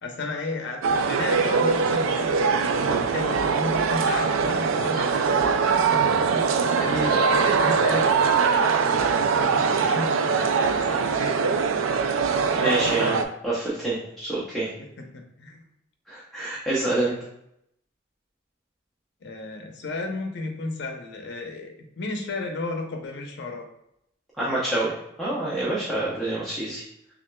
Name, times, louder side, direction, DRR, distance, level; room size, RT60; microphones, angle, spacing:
voice 1, 0.0-5.4 5.7-11.8 14.8-14.9 15.1-15.6 16.9-17.2 19.2-23.7, left 2 dB, 60° left, 3 dB, 0.7 m, -34 dB
sound 1, 0.8-13.2, right 5 dB, 85° right, 0.4 m, -22 dB
voice 2, 6.8-7.1 12.5-14.7 16.1-17.1 24.4-24.9 25.2-26.8, right 2 dB, ahead, -8 dB, 0.7 m, -27 dB
6.1 x 2.4 x 2.2 m, 0.78 s
head